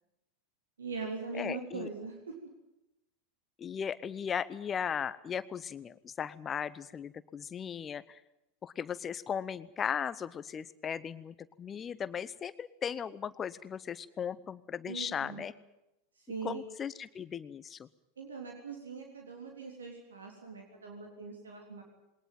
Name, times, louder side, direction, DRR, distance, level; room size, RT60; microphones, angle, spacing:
voice 1, 0.8-2.3 14.9-15.5 16.3-16.6 18.2-21.8, right 4 dB, 80° right, 1 dB, 3.6 m, -41 dB
voice 2, 1.3-1.9 3.6-8.2 8.6-15.5 16.4-17.9, left 7 dB, 30° left, 16 dB, 0.8 m, -37 dB
21.5 x 19.5 x 9.2 m, 0.90 s
figure-of-eight pair, 85°, 0 cm